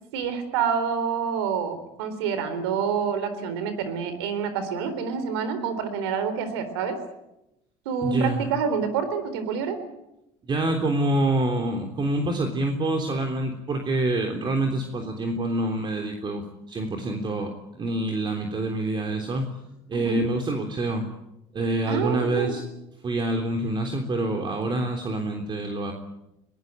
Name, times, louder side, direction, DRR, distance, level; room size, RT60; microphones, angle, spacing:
voice 1, 0.1-7.0 7.9-9.8 19.9-20.2 21.9-22.6, right 6 dB, 90° right, 11 dB, 3.9 m, -27 dB
voice 2, 8.0-8.5 10.5-19.5 19.9-21.1 21.5-22.6 23.0-25.9, right 2 dB, 35° right, 4 dB, 3.5 m, -26 dB
22.5 x 18.5 x 9.0 m, 0.88 s
supercardioid pair, 85°, 13 cm